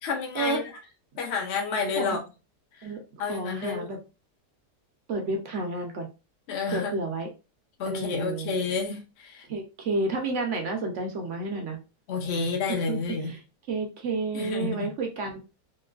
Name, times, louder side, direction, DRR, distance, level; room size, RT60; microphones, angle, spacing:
voice 1, 0.0-0.6 1.2-2.2 2.8-2.9 3.2-4.0 6.5-6.9 7.8-9.4 12.1-13.3 14.3-14.9, left 5 dB, 55° left, 0.8 m, -30 dB
voice 2, 2.8-4.0 5.1-6.1 6.7-7.3 7.9-8.5 9.5-11.8 12.9-13.0 13.2-13.4 13.7-15.4, right 3 dB, 65° right, 0.8 m, -30 dB
3.0 x 2.9 x 2.4 m
omnidirectional pair, 1.7 m